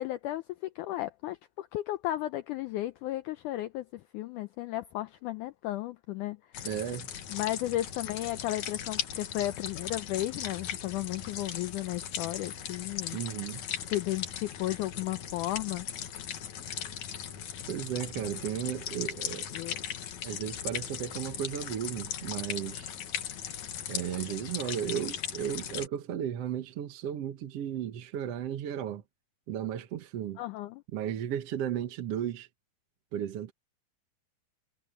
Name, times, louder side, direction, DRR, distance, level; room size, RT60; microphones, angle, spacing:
voice 1, 0.0-6.7 7.3-13.2 13.8-15.9 19.5-19.8 30.4-30.8, left 15 dB, 85° left, 1.8 m, -34 dB
sound 1, 6.5-25.9, left 9 dB, 60° left, 2.7 m, -38 dB
voice 2, 6.6-7.1 13.1-13.6 17.7-19.5 20.2-22.9 23.9-29.0 29.5-30.4 30.9-32.5 33.1-33.5, right 10 dB, 60° right, 1.6 m, -34 dB
omnidirectional pair, 4.2 m